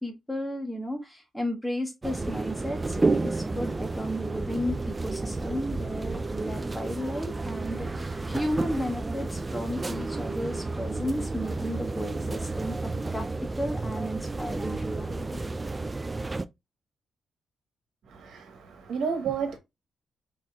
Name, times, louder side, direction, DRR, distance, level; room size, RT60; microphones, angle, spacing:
voice 1, 0.0-12.7 13.1-13.2 13.6-15.4, equal, 5° left, 1.3 m, -33 dB
sound 1, 2.0-16.4, right 3 dB, 20° right, 0.3 m, -31 dB
voice 2, 18.1-19.6, right 6 dB, 80° right, 1.3 m, -31 dB
5.3 x 4.1 x 2.4 m
wide cardioid pair, 155°, 0 cm